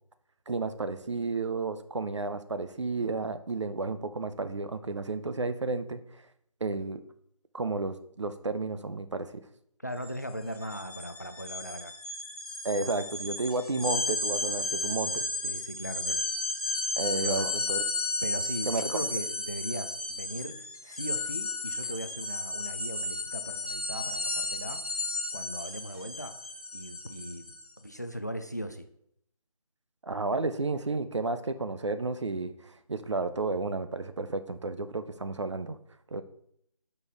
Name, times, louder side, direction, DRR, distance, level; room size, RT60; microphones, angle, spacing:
voice 1, 0.5-6.3 6.6-7.0 7.5-9.4 12.6-15.2 17.0-17.8 18.7-19.0 30.0-35.8 36.1-36.2, right 3 dB, 50° right, 11 dB, 0.5 m, -32 dB
voice 2, 9.8-11.9 15.4-16.2 17.2-17.5 18.2-20.6 20.8-24.8 25.3-26.3 26.7-28.9, equal, 30° left, 9 dB, 0.3 m, -38 dB
sound 1, 10.0-10.1 10.4-27.7, left 2 dB, 85° left, 1.6 m, -34 dB
5.4 x 4.2 x 4.6 m, 0.70 s
figure-of-eight pair, 170°, 19 cm